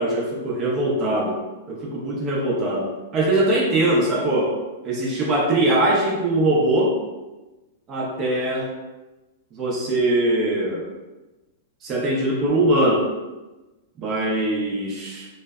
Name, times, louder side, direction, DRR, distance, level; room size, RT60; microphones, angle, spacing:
voice 1, 0.0-1.4 1.7-4.6 4.8-7.0 7.9-8.7 9.5-10.9 11.8-13.1 14.0-15.3, right 1 dB, 30° right, -3 dB, 0.7 m, -22 dB
3.2 x 2.1 x 2.3 m, 1.1 s
hypercardioid pair, 140°, 0 cm